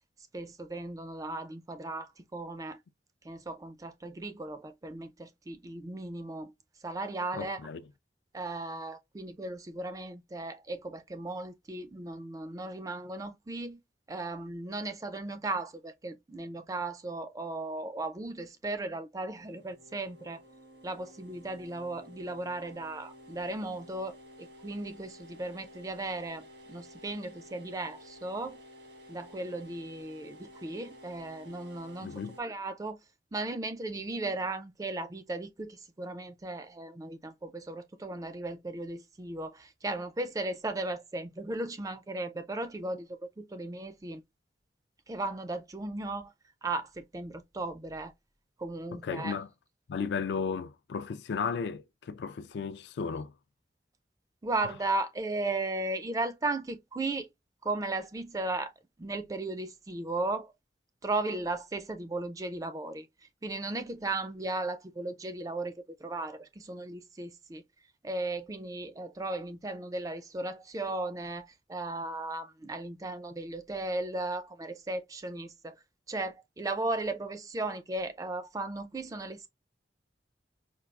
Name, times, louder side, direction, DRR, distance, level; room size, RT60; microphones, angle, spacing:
voice 1, 0.3-2.8 3.2-6.5 6.8-7.6 8.3-13.8 14.1-20.4 20.8-28.6 29.1-32.1 32.4-33.0 33.3-44.2 45.1-46.3 46.6-48.1 48.6-49.4 54.4-57.3 57.6-58.7 59.0-60.5 61.0-63.1 63.4-67.6 68.0-75.8 76.1-79.5, right 2 dB, 20° right, 0.3 m, -36 dB
voice 2, 7.3-7.8 32.0-32.4 48.9-49.5 49.9-53.3, left 5 dB, 75° left, 0.3 m, -34 dB
sound 1, 19.4-32.4, equal, 80° right, 1.3 m, -53 dB
4.5 x 2.3 x 2.2 m
head